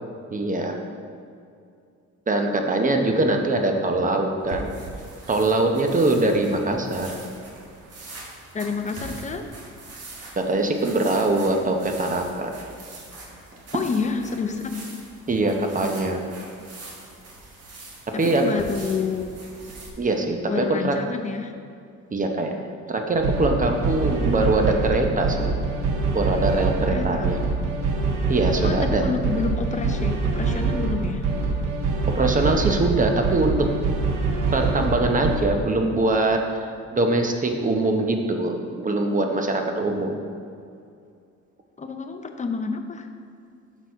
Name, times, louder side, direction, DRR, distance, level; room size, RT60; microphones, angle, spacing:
voice 1, 0.3-0.8 2.3-4.7 5.3-7.1 10.4-12.5 15.3-16.2 18.2-18.4 20.0-21.0 22.1-22.6 22.9-25.5 26.1-27.4 28.3-29.1 32.1-33.7 34.5-40.1, right 2 dB, 25° right, 3 dB, 0.8 m, -22 dB
sound 1, 4.4-19.9, right 2 dB, 55° right, 1.4 m, -42 dB
voice 2, 8.5-9.5 13.7-14.8 18.1-19.2 20.5-21.5 26.9-27.3 28.6-31.3 41.8-43.1, left 4 dB, 25° left, 6 dB, 0.6 m, -28 dB
sound 2, 23.2-35.4, right 3 dB, 80° right, 0.9 m, -25 dB
6.2 x 4.0 x 5.6 m, 2.4 s
cardioid pair, 90°, 30 cm